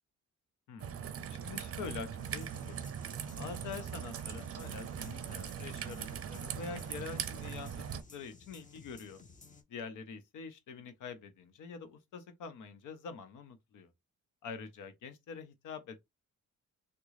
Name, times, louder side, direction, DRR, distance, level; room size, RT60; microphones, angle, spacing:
Raindrop / Trickle dribble, 0.8-8.0, right 8 dB, 50° right, 0.5 m, -40 dB
voice 1, 1.3-2.9 3.3-9.2 9.7-13.9 14.4-16.0, left 5 dB, 85° left, 0.8 m, -45 dB
sound 1, 2.2-9.6, left 4 dB, 25° left, 0.8 m, -56 dB
3.6 x 2.2 x 3.2 m
cardioid pair, 100°, 30 cm